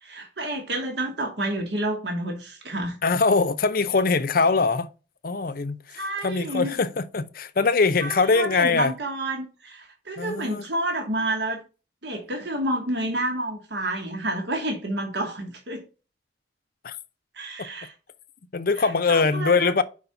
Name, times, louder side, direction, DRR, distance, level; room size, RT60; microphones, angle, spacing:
voice 1, 0.0-3.0 5.9-6.7 8.0-11.6 12.0-15.8 17.3-17.9 18.8-19.8, right 1 dB, 65° right, 1.2 m, -29 dB
voice 2, 3.0-4.9 5.2-8.9 10.2-10.6 16.8-17.0 17.6-17.7 18.5-19.8, left 4 dB, 50° left, 0.5 m, -22 dB
5.1 x 4.0 x 5.7 m
head